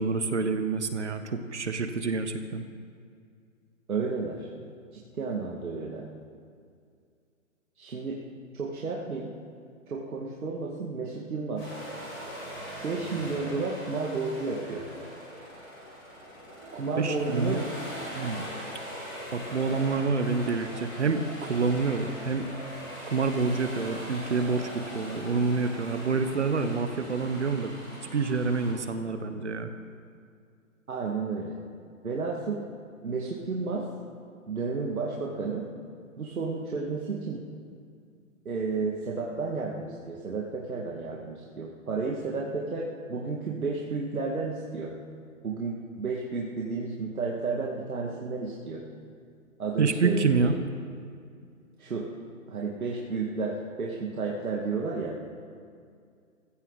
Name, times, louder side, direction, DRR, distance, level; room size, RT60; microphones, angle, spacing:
voice 1, 0.0-2.6 17.0-17.6 18.1-18.4 19.3-22.5 23.1-27.8 28.1-29.7 49.8-50.5, right 4 dB, 55° right, 8 dB, 1.2 m, -27 dB
voice 2, 3.9-4.5 5.1-6.0 7.8-8.2 8.5-9.3 9.9-11.6 12.8-14.8 16.7-17.6 30.9-31.6 32.0-32.6 33.0-33.8 34.5-35.6 36.2-37.4 38.4-44.9 45.4-48.8 49.6-50.6 51.8-52.1 52.5-55.1, right 4 dB, 85° right, -3 dB, 2.4 m, -32 dB
sound 1, 11.6-28.7, equal, 10° left, 3.2 m, -41 dB
21.5 x 15.5 x 4.2 m, 2.2 s
hypercardioid pair, 180°, 42 cm